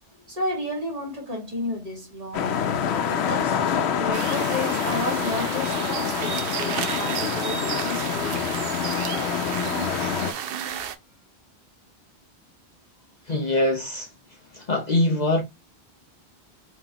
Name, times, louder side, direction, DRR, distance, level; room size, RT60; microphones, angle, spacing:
voice 1, 0.3-2.8 3.1-3.6 4.0-8.6, left 1 dB, 35° right, 1.6 m, -32 dB
sound 1, 2.3-10.3, left 8 dB, 75° left, 0.8 m, -26 dB
sound 2, 4.1-10.9, right 8 dB, 65° right, 0.7 m, -32 dB
voice 2, 13.3-14.1 14.5-15.4, left 1 dB, 45° left, 0.8 m, -23 dB
3.9 x 2.9 x 2.8 m
omnidirectional pair, 1.1 m